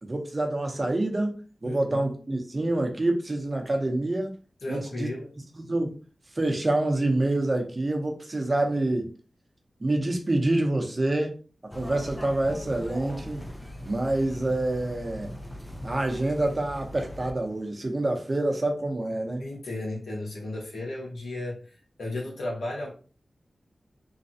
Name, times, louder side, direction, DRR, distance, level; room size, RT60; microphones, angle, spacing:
voice 1, 0.0-4.3 4.7-5.1 5.6-6.0 6.3-9.1 9.8-11.4 11.7-13.5 13.8-15.3 15.8-19.5, right 2 dB, 40° right, 0.9 m, -27 dB
voice 2, 1.6-2.0 4.6-5.3 19.4-22.9, left 2 dB, 90° left, 1.3 m, -34 dB
sound 1, 11.7-17.3 17.6-17.7, equal, 20° left, 0.6 m, -40 dB
3.2 x 2.4 x 2.7 m
cardioid pair, 45°, 0 cm